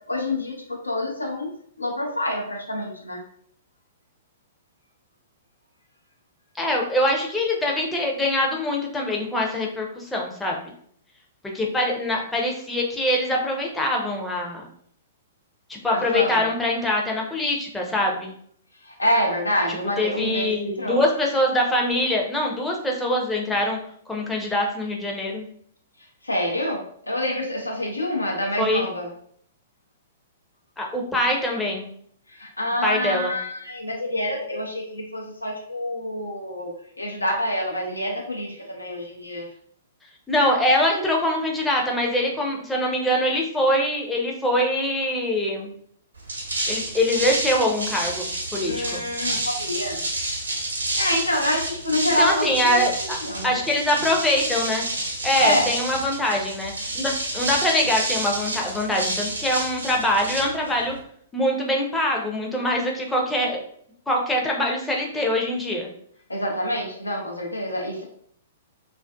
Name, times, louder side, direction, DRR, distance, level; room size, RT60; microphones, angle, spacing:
voice 1, 0.1-1.5 1.8-3.2 15.9-16.4 18.8-21.0 26.2-29.1 32.3-39.5 48.7-50.0 51.0-52.9 53.2-53.6 55.4-55.7 66.3-68.0, left 1 dB, 85° left, -1 dB, 0.7 m, -27 dB
voice 2, 6.6-10.5 11.5-14.6 15.7-18.3 20.0-23.8 24.1-25.5 28.6-28.9 30.8-31.9 32.8-33.3 40.3-45.7 46.7-49.0 52.2-53.2 53.4-54.9 55.2-60.9 61.3-63.6 64.1-65.9, left 1 dB, 10° left, -1 dB, 0.6 m, -23 dB
sound 1, 46.2-61.0, right 2 dB, 75° right, 0.8 m, -29 dB
2.5 x 2.3 x 2.2 m, 0.63 s
figure-of-eight pair, 110°, 0 cm